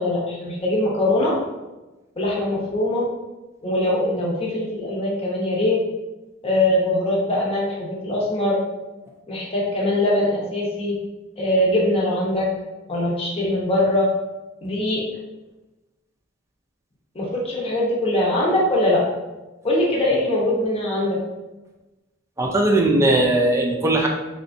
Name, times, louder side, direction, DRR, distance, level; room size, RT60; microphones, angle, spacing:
voice 1, 0.0-1.4 2.2-3.1 3.6-5.8 6.4-8.6 9.3-11.0 11.4-12.5 12.9-14.1 14.6-15.0 17.1-19.0 19.6-21.2, left 1 dB, 30° left, -4 dB, 0.8 m, -22 dB
voice 2, 22.4-24.1, right 2 dB, 15° right, 0 dB, 0.4 m, -18 dB
4.0 x 3.3 x 2.6 m, 1.1 s
head